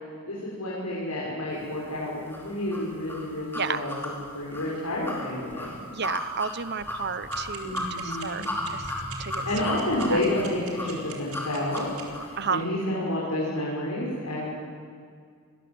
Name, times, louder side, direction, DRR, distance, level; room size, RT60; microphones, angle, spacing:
voice 1, 0.3-5.7 7.6-8.4 9.4-11.9 12.2-14.5, left 1 dB, 90° left, -6 dB, 6.9 m, -30 dB
sound 1, 2.3-12.4, left 1 dB, 10° left, 4.5 m, -35 dB
voice 2, 5.9-8.8 9.2-9.4 10.1-10.2 12.4-12.6, right 6 dB, 50° right, 13 dB, 1.0 m, -32 dB
sound 2, 7.3-12.0, right 10 dB, 75° right, 4.4 m, -41 dB
29.5 x 21.5 x 8.1 m, 2.1 s
head